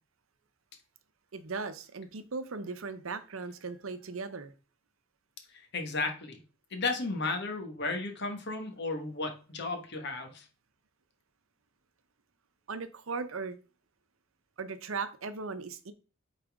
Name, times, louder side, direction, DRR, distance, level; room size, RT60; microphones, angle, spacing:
voice 1, 1.3-4.5 12.7-13.6 14.6-15.9, right 4 dB, 75° right, 11 dB, 0.8 m, -38 dB
voice 2, 5.5-6.4 6.7-10.5, left 3 dB, 55° left, 5 dB, 1.5 m, -34 dB
8.7 x 4.1 x 3.6 m, 0.35 s
head